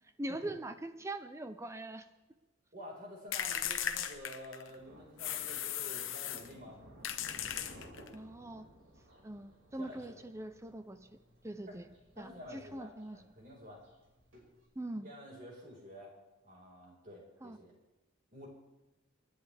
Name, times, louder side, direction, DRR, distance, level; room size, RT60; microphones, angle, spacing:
voice 1, 0.2-2.1 8.1-8.7 9.2-11.2 11.4-11.9 12.2-13.2 14.8-15.1 17.4-17.6, right 1 dB, 15° right, 10 dB, 0.5 m, -42 dB
voice 2, 2.7-6.8 9.8-10.2 11.7-11.8 12.2-13.8 15.0-16.1 16.4-17.7 18.3-18.5, equal, 45° right, -2 dB, 4.7 m, -50 dB
sound 1, 3.3-4.7 5.2-6.5 7.0-8.1, left 10 dB, 75° left, 1.0 m, -37 dB
Thunder, 4.7-14.7, equal, 85° right, 5.4 m, -58 dB
28.5 x 10.5 x 3.4 m, 1.1 s
head